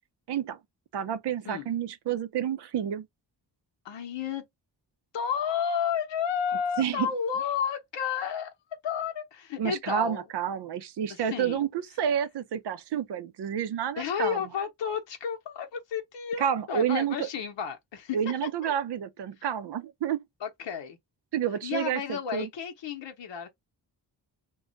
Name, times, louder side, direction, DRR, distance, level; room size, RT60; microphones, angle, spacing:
voice 1, 0.3-0.6 0.9-3.1 6.8-7.1 9.6-14.4 16.4-17.3 18.1-20.2 21.3-22.5, right 9 dB, 70° right, 0.6 m, -29 dB
voice 2, 3.8-4.5 5.1-10.2 11.1-11.6 14.0-18.2 18.6-18.7 20.4-21.0 21.6-23.5, left 7 dB, 85° left, 0.7 m, -32 dB
2.3 x 2.1 x 3.7 m
cardioid pair, 75°, 43 cm